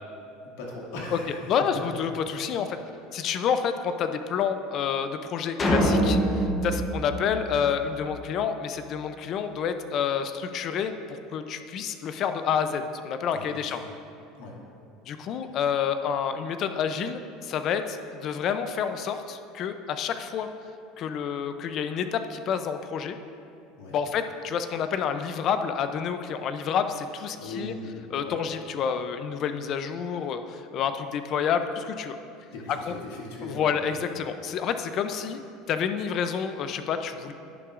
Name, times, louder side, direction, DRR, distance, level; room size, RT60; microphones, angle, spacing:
voice 1, 0.4-2.0 6.6-6.8 13.3-13.8 14.4-14.6 23.8-24.0 27.4-28.0 28.2-28.4 32.5-34.2, left 2 dB, 90° left, -3 dB, 2.1 m, -39 dB
voice 2, 1.5-2.8 3.1-13.8 15.1-20.5 21.0-23.2 23.9-27.7 28.1-32.2 32.7-32.9 33.4-35.4 35.7-37.3, left 7 dB, 35° left, 9 dB, 0.4 m, -29 dB
sound 1, 5.6-8.1, equal, 20° left, 0.8 m, -25 dB
10.5 x 10.0 x 2.5 m, 2.6 s
cardioid pair, 165°, 0 cm